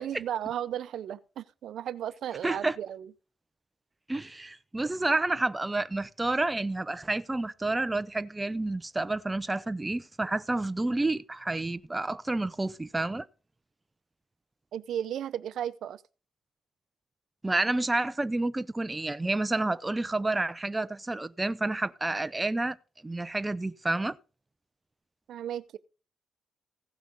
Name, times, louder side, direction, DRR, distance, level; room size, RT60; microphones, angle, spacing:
voice 1, 0.0-3.1 14.7-16.0 25.3-25.8, right 10 dB, 70° right, 0.7 m, -35 dB
voice 2, 2.4-2.8 4.1-13.3 17.4-22.8 23.0-24.2, right 2 dB, 15° right, 0.6 m, -29 dB
16.0 x 5.9 x 5.4 m
cardioid pair, 90°, 0 cm